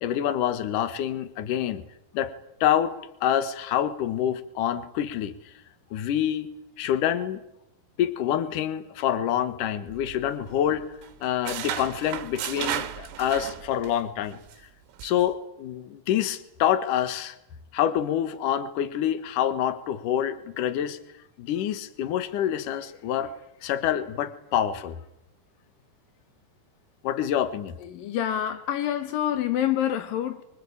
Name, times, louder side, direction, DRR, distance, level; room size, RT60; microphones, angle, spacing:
voice 1, 0.0-1.8 2.1-2.3 2.6-5.3 5.9-6.5 6.8-7.4 8.0-10.9 11.2-14.4 15.0-17.4 17.7-21.0 21.4-23.3 23.6-25.0 27.0-27.8, left 10 dB, 70° left, 1.9 m, -26 dB
sound 1, 9.9-10.8 11.0-14.0 14.3-14.5 15.0-15.2, right 10 dB, 80° right, 4.5 m, -34 dB
voice 2, 27.8-30.4, left 11 dB, 90° left, 2.0 m, -27 dB
25.5 x 25.0 x 8.8 m
omnidirectional pair, 5.9 m